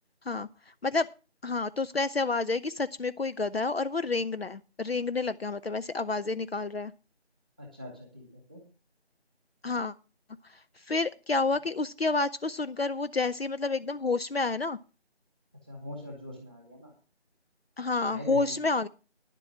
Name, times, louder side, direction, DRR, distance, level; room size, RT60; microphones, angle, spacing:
voice 1, 1.4-6.9 9.6-9.9 10.5-14.8 17.8-18.9, left 3 dB, 60° left, 13 dB, 0.6 m, -29 dB
voice 2, 7.6-8.6 15.6-16.9 18.0-18.5, left 1 dB, 10° left, 1 dB, 1.4 m, -42 dB
10.5 x 7.6 x 6.1 m, 0.33 s
figure-of-eight pair, 170°, 34 cm